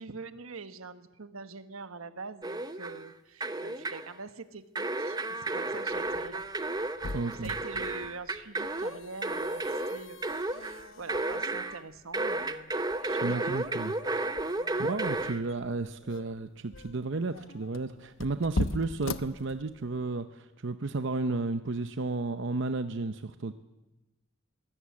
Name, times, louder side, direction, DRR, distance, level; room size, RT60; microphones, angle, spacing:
voice 1, 0.0-6.4 6.8-13.7 14.2-14.3 14.5-14.9 15.3-15.4, right 4 dB, 85° right, 11 dB, 1.2 m, -45 dB
sound 1, 2.4-3.1 3.4-4.1 4.7-11.8 12.1-15.4, right 2 dB, 20° right, 0.8 m, -33 dB
sound 2, 5.9-20.1, left 2 dB, 70° left, 0.9 m, -41 dB
voice 2, 7.1-7.5 13.2-13.9 14.8-23.5, right 3 dB, 60° right, 10 dB, 0.7 m, -33 dB
23.0 x 17.5 x 8.5 m, 1.1 s
head